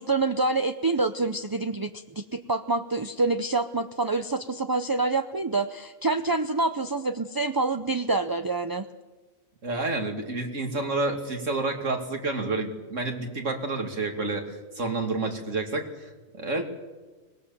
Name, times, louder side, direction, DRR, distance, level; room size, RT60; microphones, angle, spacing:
voice 1, 0.0-8.9, right 3 dB, 25° right, 8 dB, 0.4 m, -27 dB
voice 2, 9.6-16.6, right 3 dB, 65° right, 4 dB, 2.8 m, -29 dB
24.0 x 20.0 x 7.2 m, 1.2 s
omnidirectional pair, 1.4 m